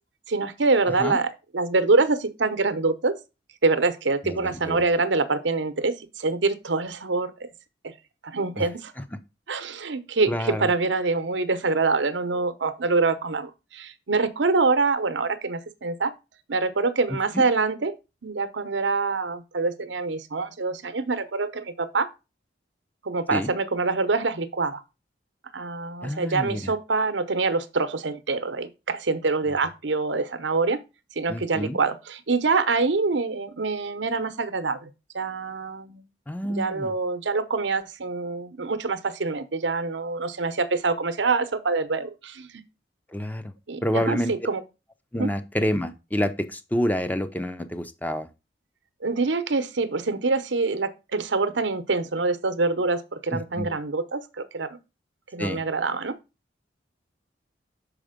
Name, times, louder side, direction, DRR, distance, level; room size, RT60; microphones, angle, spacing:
voice 1, 0.3-3.1 3.6-7.5 8.2-8.9 9.5-16.1 16.5-17.9 18.2-22.1 23.0-24.8 25.5-30.8 31.2-34.9 35.1-36.0 36.5-42.6 43.7-44.6 45.2-45.3 49.0-54.8 55.3-56.2, right 3 dB, 75° right, 0.8 m, -25 dB
voice 2, 4.2-4.8 8.6-8.7 10.3-10.7 17.1-17.4 23.3-23.5 26.0-26.7 31.3-31.8 36.3-36.9 43.1-43.5 43.8-44.3 45.1-48.3 53.3-53.7 55.4-55.6, equal, 10° left, 0.6 m, -28 dB
6.4 x 4.9 x 5.1 m
head